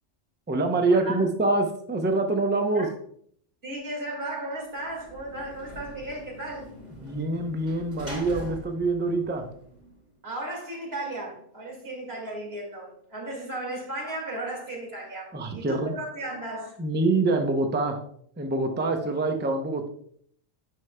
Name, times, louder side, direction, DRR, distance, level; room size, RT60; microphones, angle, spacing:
voice 1, 0.5-2.9 7.0-9.5 15.3-15.9 16.8-18.0 18.4-19.9, right 2 dB, 15° right, 5 dB, 0.4 m, -25 dB
voice 2, 3.6-6.7 10.2-16.8, right 1 dB, 55° right, -2 dB, 2.3 m, -35 dB
Sliding door / Slam, 4.7-10.1, equal, 35° right, 2.1 m, -43 dB
9.4 x 5.4 x 2.2 m, 0.65 s
omnidirectional pair, 1.3 m